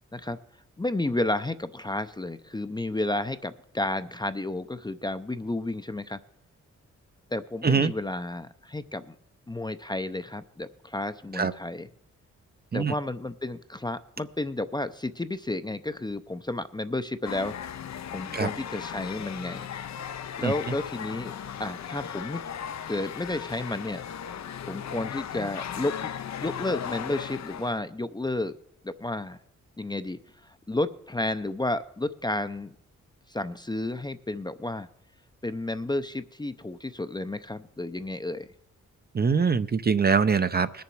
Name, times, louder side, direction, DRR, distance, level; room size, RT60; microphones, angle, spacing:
voice 1, 0.8-6.2 7.3-9.1 9.5-11.9 12.7-17.5 18.1-19.7 20.4-21.3 21.6-22.4 22.9-24.0 24.7-26.1 26.4-28.6 28.8-29.4 29.8-32.8 33.3-34.9 35.4-38.5, left 2 dB, 15° left, 11 dB, 0.6 m, -31 dB
sound 1, 17.2-27.8, left 8 dB, 60° left, 0.7 m, -37 dB
voice 2, 39.1-40.8, right 5 dB, 30° right, 12 dB, 0.6 m, -23 dB
19.5 x 7.0 x 4.7 m, 0.69 s
cardioid pair, 65°, 31 cm